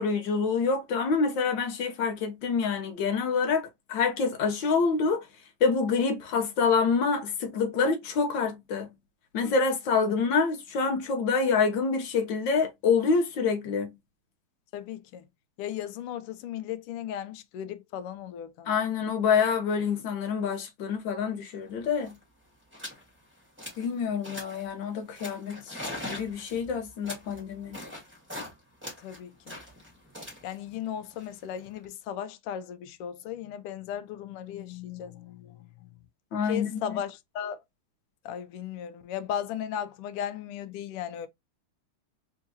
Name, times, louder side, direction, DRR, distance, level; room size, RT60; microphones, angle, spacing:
voice 1, 0.0-5.3 5.6-8.9 9.3-13.9 18.7-22.2 23.8-25.8 26.1-27.8 36.3-37.0, left 5 dB, 65° left, 1.5 m, -27 dB
voice 2, 14.7-15.2 15.6-18.7 29.0-29.6 30.4-35.9 36.5-37.6 38.2-41.3, left 9 dB, 85° left, 1.5 m, -36 dB
sound 1, 21.7-21.8 21.9-22.2 22.7-23.0 23.4-23.9 24.2-24.7 25.2-28.5 28.8-31.8, left 1 dB, 5° right, 1.6 m, -41 dB
3.6 x 3.6 x 2.7 m
omnidirectional pair, 2.4 m